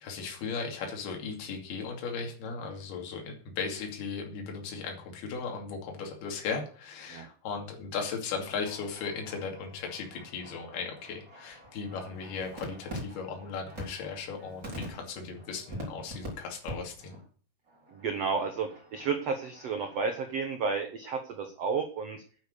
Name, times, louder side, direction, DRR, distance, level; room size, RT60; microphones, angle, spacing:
voice 1, 0.0-17.1, left 5 dB, 70° left, 2 dB, 4.5 m, -37 dB
sound 1, 8.5-16.3 16.6-16.7 17.0-17.3 17.6-20.5, equal, 20° right, 4.1 m, -45 dB
voice 2, 17.9-22.2, right 5 dB, 75° right, 6 dB, 1.5 m, -32 dB
9.6 x 9.2 x 6.7 m, 0.42 s
omnidirectional pair, 4.8 m